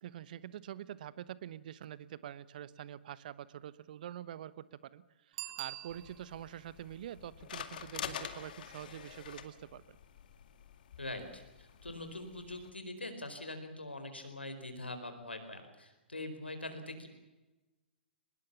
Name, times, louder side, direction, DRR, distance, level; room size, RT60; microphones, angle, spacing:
voice 1, 0.0-10.0, right 11 dB, 50° right, 18 dB, 1.0 m, -46 dB
Bicycle bell, 5.3-6.5 12.0-12.1, right 17 dB, 35° right, 1.5 m, -44 dB
sound 1, 5.9-12.7, left 9 dB, 55° left, 2.2 m, -47 dB
voice 2, 11.0-17.1, left 2 dB, 85° left, 7 dB, 4.6 m, -43 dB
23.5 x 21.0 x 7.3 m, 1.1 s
figure-of-eight pair, 120°, 6 cm